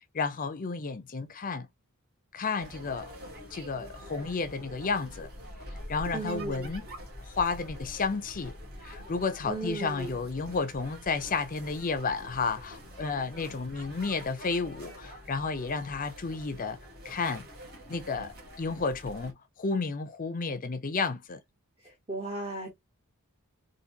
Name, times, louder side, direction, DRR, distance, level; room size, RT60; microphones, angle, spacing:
voice 1, 0.1-1.7 2.3-3.1 3.5-5.3 5.9-6.9 7.2-8.5 8.8-16.8 17.0-17.5 17.9-18.3 18.6-21.4, left 4 dB, 40° left, 0.5 m, -32 dB
sound 1, 2.6-19.3, equal, 45° right, 1.6 m, -45 dB
voice 2, 6.1-6.7 9.4-10.2 21.8-22.7, right 2 dB, 25° right, 0.9 m, -36 dB
3.9 x 2.6 x 2.8 m
head